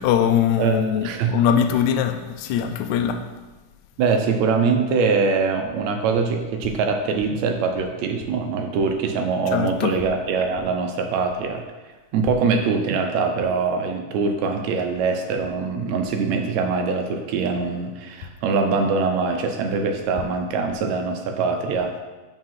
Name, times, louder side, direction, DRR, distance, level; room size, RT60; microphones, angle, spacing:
voice 1, 0.0-3.3 9.5-10.0, left 8 dB, 80° left, 1.8 m, -22 dB
voice 2, 0.6-1.4 4.0-11.6 12.1-21.9, right 4 dB, 75° right, 1.7 m, -23 dB
5.2 x 5.0 x 5.6 m
omnidirectional pair, 3.6 m